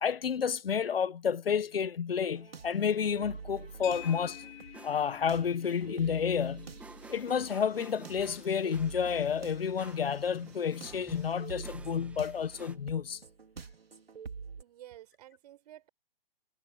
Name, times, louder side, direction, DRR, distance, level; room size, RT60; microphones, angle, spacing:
voice 1, 0.0-4.4 4.8-6.7 7.1-13.2, left 7 dB, 80° left, 1.2 m, -30 dB
sound 1, 2.2-14.6, right 5 dB, 85° right, 3.2 m, -47 dB
sound 2, 3.0-12.8, right 3 dB, 5° right, 1.6 m, -54 dB
sound 3, 3.8-12.3, left 22 dB, 25° left, 1.3 m, -52 dB
voice 2, 14.5-15.9, right 13 dB, 45° right, 4.9 m, -52 dB
hypercardioid pair, 145°, 29 cm